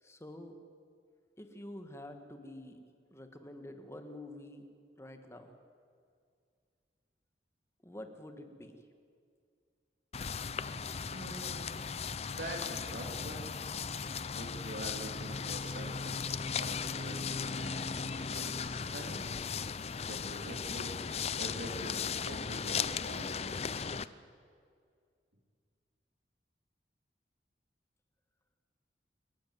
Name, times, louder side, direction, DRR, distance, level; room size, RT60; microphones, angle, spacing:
voice 1, 0.0-0.6 1.4-2.8 3.1-4.7 5.0-5.6 7.8-8.8, left 1 dB, 15° left, 6 dB, 1.7 m, -48 dB
sound 1, 10.1-24.1, left 6 dB, 35° left, 0.6 m, -37 dB
voice 2, 11.1-11.8 12.4-13.5 14.3-19.3 20.1-21.0 21.4-23.9, right 1 dB, 70° right, 0 dB, 2.9 m, -45 dB
28.5 x 11.5 x 9.4 m, 2.2 s
head